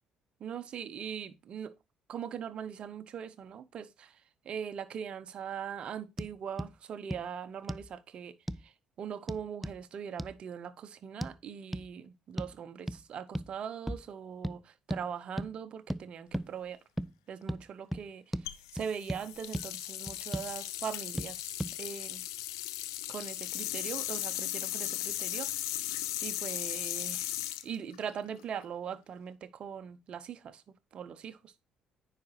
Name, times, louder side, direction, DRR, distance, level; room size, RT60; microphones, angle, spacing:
voice 1, 0.4-1.7 2.1-16.8 17.3-22.2 23.1-25.6 26.2-30.6 30.9-31.5, right 7 dB, 50° right, 0.7 m, -41 dB
sound 1, 6.2-6.3 6.6-6.7 7.1-7.2 7.7-7.9 8.5-8.7 9.3-9.8 10.2-10.3 11.2-11.3 11.7-11.9 12.4-12.6 12.9-13.0 13.3-13.5 13.9-14.1 14.4-14.6 14.9-15.0 15.4-15.5 15.9-16.0 16.3-16.5 17.0-17.1 17.5-17.6 17.9-18.0 18.3-18.5 18.8-19.2 19.5-19.7 20.1-20.5 21.2-21.3 21.6-21.7, right 1 dB, ahead, 0.4 m, -35 dB
sound 2, 18.5-28.6, left 14 dB, 85° left, 0.5 m, -37 dB
9.4 x 4.9 x 3.1 m
hypercardioid pair, 50°, 2 cm